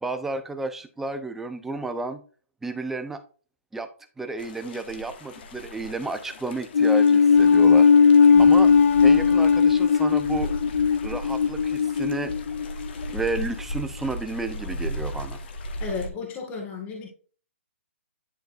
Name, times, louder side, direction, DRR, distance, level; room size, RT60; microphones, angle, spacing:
voice 1, 0.0-2.2 2.6-3.2 3.7-3.9 4.2-8.7 9.0-10.5 11.0-12.3 13.1-15.4, right 3 dB, 5° right, 0.7 m, -32 dB
sound 1, 4.4-16.1, equal, 50° left, 1.5 m, -36 dB
sound 2, 6.7-13.1, left 6 dB, 85° left, 0.4 m, -18 dB
voice 2, 8.3-8.7 15.8-17.1, left 4 dB, 20° left, 1.8 m, -34 dB
10.5 x 3.9 x 2.5 m
hypercardioid pair, 155°, 7 cm